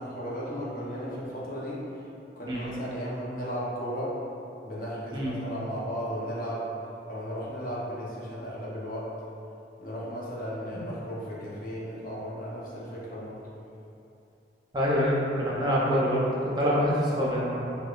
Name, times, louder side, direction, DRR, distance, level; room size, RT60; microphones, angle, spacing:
voice 1, 0.0-1.8 2.4-4.2 4.6-6.7 7.1-9.1 9.8-13.4, equal, 50° left, -6 dB, 0.7 m, -35 dB
voice 2, 14.7-17.6, equal, 25° right, -6 dB, 0.5 m, -26 dB
4.7 x 2.2 x 2.4 m, 2.7 s
head